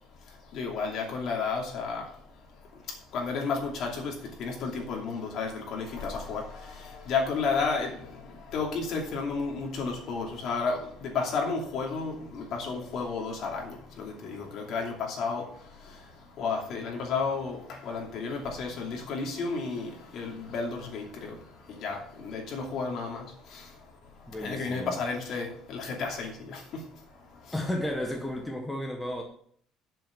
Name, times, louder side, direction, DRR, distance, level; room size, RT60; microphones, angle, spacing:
voice 1, 0.5-2.0 3.1-4.1 4.4-6.4 7.1-7.9 8.5-10.8 11.1-15.4 16.4-17.6 17.8-21.0 21.8-22.0 22.2-23.2 24.4-26.3, left 4 dB, 45° left, 0 dB, 2.7 m, -31 dB
voice 2, 24.3-25.0 27.5-29.2, left 1 dB, 5° left, 1 dB, 0.9 m, -33 dB
7.6 x 7.5 x 7.3 m, 0.63 s
cardioid pair, 180°, 0 cm